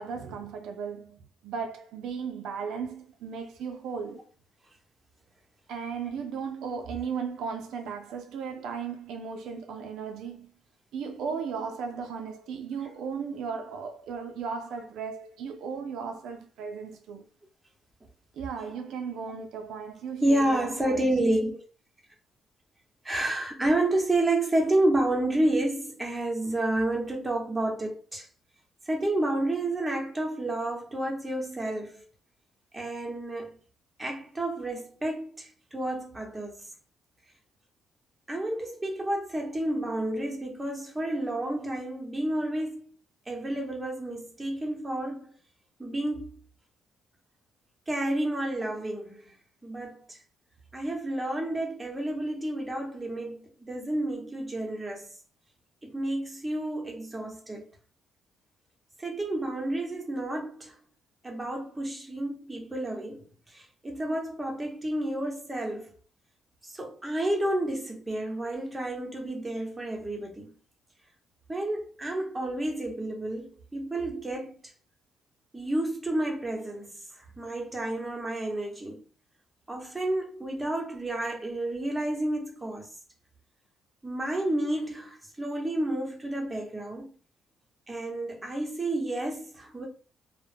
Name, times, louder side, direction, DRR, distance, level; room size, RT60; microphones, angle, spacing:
voice 1, 0.0-4.2 5.7-10.5 10.9-17.2 18.3-21.0, right 6 dB, 85° right, 0.3 m, -36 dB
voice 2, 20.2-21.6 23.0-28.3 28.9-32.0 32.7-33.6 34.0-36.7 38.3-42.9 43.3-45.3 45.8-46.3 47.9-49.3 49.6-50.2 50.7-55.1 55.8-57.7 59.0-60.7 61.2-65.9 66.6-70.5 71.5-74.6 75.5-77.0 77.4-79.0 79.7-82.9 84.0-87.1 87.9-89.9, right 1 dB, 15° right, 0.8 m, -30 dB
2.1 x 2.0 x 3.2 m
cardioid pair, 90°, 0 cm